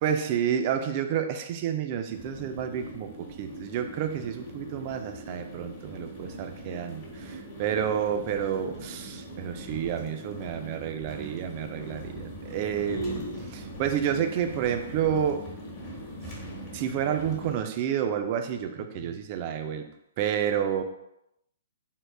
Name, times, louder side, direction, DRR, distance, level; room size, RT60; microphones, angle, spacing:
voice 1, 0.0-13.2 13.5-15.4 16.7-19.9 20.2-20.8, right 8 dB, 40° right, 7 dB, 0.3 m, -30 dB
sound 1, 2.1-17.6, right 1 dB, 35° left, 1.0 m, -41 dB
voice 2, 12.9-13.5 18.9-19.1, equal, 80° left, -2 dB, 0.9 m, -34 dB
3.6 x 2.0 x 3.1 m, 0.83 s
hypercardioid pair, 130°, 0 cm